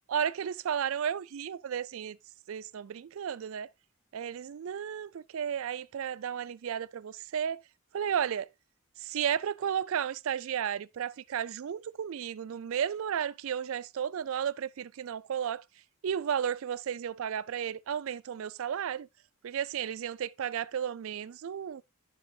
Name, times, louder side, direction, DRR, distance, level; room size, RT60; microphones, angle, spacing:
voice 1, 0.1-2.2 2.5-3.7 4.1-7.6 7.9-8.5 9.0-15.6 16.0-19.1 19.4-21.8, right 8 dB, 65° right, 0.4 m, -33 dB
10.5 x 6.8 x 2.7 m
head